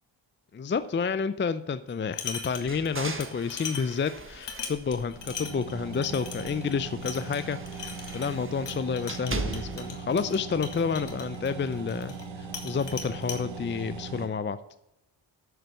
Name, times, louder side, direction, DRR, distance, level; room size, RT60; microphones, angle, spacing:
voice 1, 0.5-14.6, left 5 dB, 25° left, 13 dB, 0.5 m, -30 dB
sound 1, 1.9-2.9 3.2-12.3 12.5-13.4, left 6 dB, 65° left, 2.0 m, -40 dB
sound 2, 2.5-5.7 6.1-10.0, right 3 dB, 25° right, 1.4 m, -39 dB
sound 3, 5.2-14.3, right 4 dB, 85° right, 1.7 m, -40 dB
7.9 x 6.6 x 6.1 m, 0.86 s
cardioid pair, 60°, 46 cm